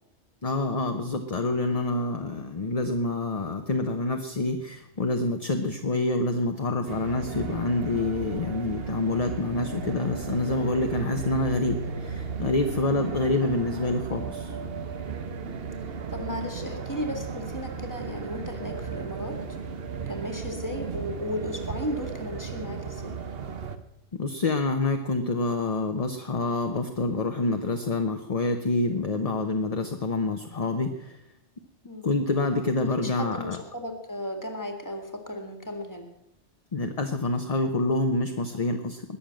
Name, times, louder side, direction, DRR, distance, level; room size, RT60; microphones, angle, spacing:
voice 1, 0.4-14.6 24.1-31.2 32.0-33.6 36.7-39.0, left 2 dB, 35° left, 5 dB, 0.9 m, -27 dB
sound 1, 6.9-23.8, right 5 dB, 55° right, 1.2 m, -35 dB
voice 2, 16.1-19.4 20.1-23.2 31.8-32.1 32.8-36.1, left 1 dB, 15° left, 4 dB, 2.1 m, -35 dB
20.5 x 7.1 x 7.7 m, 0.85 s
omnidirectional pair, 1.2 m